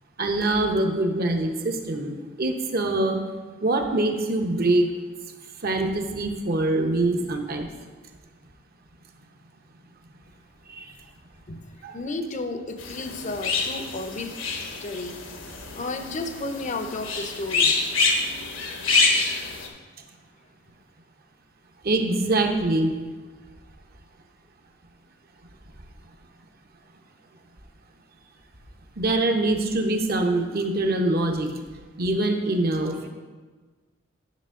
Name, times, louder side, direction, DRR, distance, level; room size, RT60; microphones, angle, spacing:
voice 1, 0.2-3.2 3.6-4.9 5.6-7.7 10.7-10.9 11.8-12.0 21.8-23.0 29.0-31.5 32.0-33.1, right 2 dB, 50° right, 4 dB, 0.9 m, -24 dB
voice 2, 11.5-14.3 14.8-15.2 15.7-17.8, left 2 dB, 40° left, 7 dB, 0.7 m, -33 dB
sound 1, 12.8-19.7, left 4 dB, 80° left, 1.2 m, -26 dB
10.5 x 6.5 x 3.7 m, 1.4 s
head